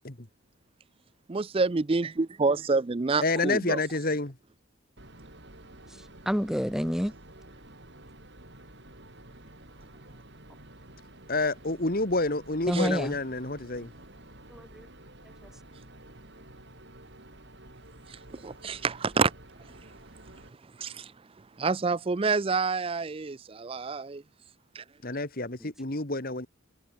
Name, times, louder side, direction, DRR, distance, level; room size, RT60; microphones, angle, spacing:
voice 1, 1.3-3.8 12.7-12.9 18.1-19.3 20.8-21.1 21.6-24.2 24.8-24.9, right 4 dB, 25° right, 0.4 m, -28 dB
voice 2, 3.2-4.3 11.3-13.9 25.0-26.5, left 2 dB, 45° left, 2.1 m, -28 dB
sound 1, 5.0-20.5, right 1 dB, 55° right, 7.4 m, -50 dB
voice 3, 6.0-7.1 12.7-13.2 14.5-14.9 25.6-25.7, equal, ahead, 3.1 m, -29 dB
head